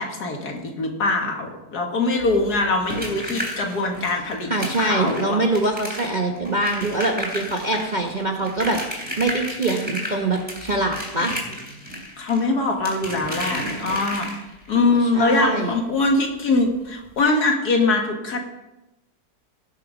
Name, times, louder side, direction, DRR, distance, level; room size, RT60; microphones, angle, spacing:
voice 1, 0.0-5.4 12.2-14.3 14.7-18.4, left 3 dB, 65° left, 2 dB, 2.2 m, -22 dB
sound 1, 2.2-14.7 16.2-16.3 16.5-16.7 17.1-17.2, equal, 5° right, 3.1 m, -33 dB
voice 2, 4.5-8.8 9.2-11.3 14.7-15.7, right 2 dB, 30° right, 1 dB, 0.9 m, -24 dB
18.0 x 6.4 x 5.1 m, 0.97 s
omnidirectional pair, 1.8 m